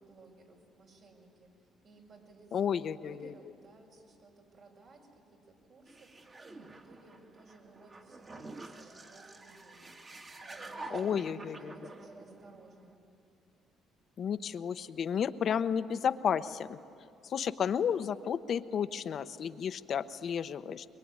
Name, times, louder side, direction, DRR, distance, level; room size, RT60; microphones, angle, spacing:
voice 1, 0.0-9.9 10.4-13.0, right 3 dB, 65° right, 0 dB, 6.1 m, -58 dB
voice 2, 2.5-3.3 10.9-11.9 14.2-16.8 17.2-20.8, left 8 dB, 55° left, 12 dB, 0.9 m, -32 dB
sound 1, 5.9-12.9, right 2 dB, 35° right, 2.2 m, -47 dB
23.0 x 22.5 x 9.7 m, 2.6 s
cardioid pair, 85°, 0 cm